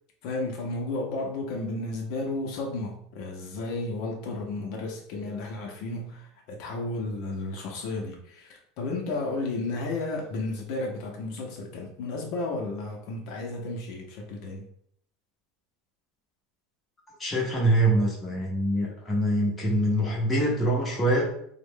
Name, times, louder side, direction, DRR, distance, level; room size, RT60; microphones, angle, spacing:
voice 1, 0.2-14.6, left 2 dB, 45° left, 0 dB, 0.6 m, -33 dB
voice 2, 17.2-21.3, right 1 dB, 5° left, -5 dB, 0.7 m, -24 dB
3.6 x 2.0 x 3.5 m, 0.68 s
supercardioid pair, 180°, 0 cm